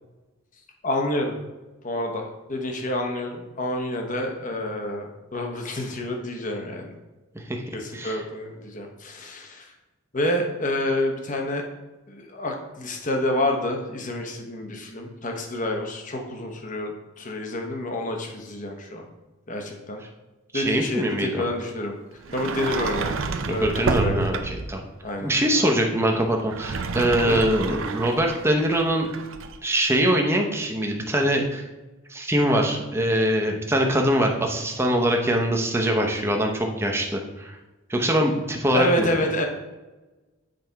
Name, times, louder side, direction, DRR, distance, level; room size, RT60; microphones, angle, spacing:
voice 1, 0.8-1.3 1.8-6.9 7.7-9.7 10.1-11.6 12.1-19.0 19.5-20.0 20.5-21.9 22.3-23.2 23.5-24.4 25.0-25.7 27.3-27.4 38.7-39.4, left 1 dB, 40° left, 3 dB, 1.0 m, -28 dB
voice 2, 20.5-21.4 23.5-24.8 25.2-29.1 29.6-31.6 32.1-37.6 37.9-39.1, equal, 10° right, 1 dB, 0.7 m, -23 dB
Sliding door, 22.3-24.8 26.4-29.6, right 4 dB, 70° right, 0.5 m, -29 dB
7.8 x 4.2 x 4.6 m, 1.1 s
head